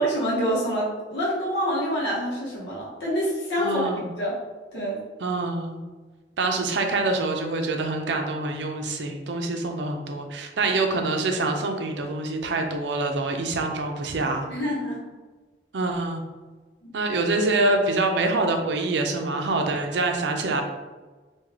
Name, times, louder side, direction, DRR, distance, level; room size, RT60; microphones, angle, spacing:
voice 1, 0.0-3.8 4.2-4.4 4.7-5.0 14.5-15.0 16.8-16.9, equal, 75° left, -6 dB, 0.8 m, -26 dB
voice 2, 3.6-4.0 5.2-5.8 6.4-14.5 15.7-16.2 16.9-20.6, right 2 dB, 80° right, 4 dB, 0.5 m, -25 dB
3.5 x 2.3 x 3.2 m, 1.3 s
head